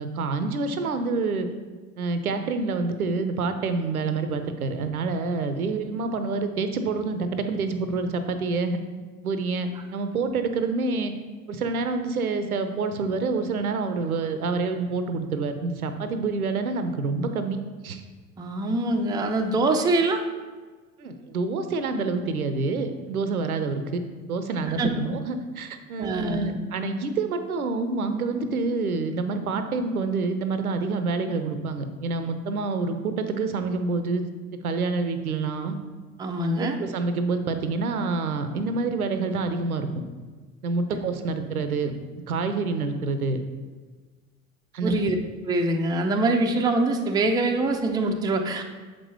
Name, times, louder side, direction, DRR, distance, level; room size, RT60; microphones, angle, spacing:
voice 1, 0.0-1.5 2.0-8.8 9.2-11.1 11.5-18.0 21.0-24.0 24.3-34.2 34.6-35.8 36.6-39.9 40.6-41.9 42.3-43.4 44.7-45.0, right 4 dB, 85° right, 8 dB, 0.6 m, -27 dB
voice 2, 18.4-20.2 24.8-24.9 26.0-26.6 36.2-36.8 44.8-45.2 45.5-48.6, right 2 dB, 10° right, 3 dB, 0.4 m, -24 dB
7.0 x 5.1 x 3.4 m, 1.4 s
figure-of-eight pair, 65°, 43 cm